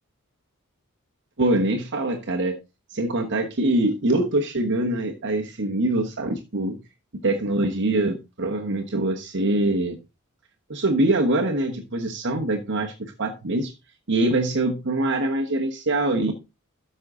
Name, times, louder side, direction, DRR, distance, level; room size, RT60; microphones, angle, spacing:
voice 1, 1.4-2.6 2.9-6.8 7.2-10.0 10.7-13.7 14.1-16.3, right 2 dB, 55° right, 3 dB, 1.2 m, -24 dB
13.0 x 5.6 x 3.7 m, 0.26 s
head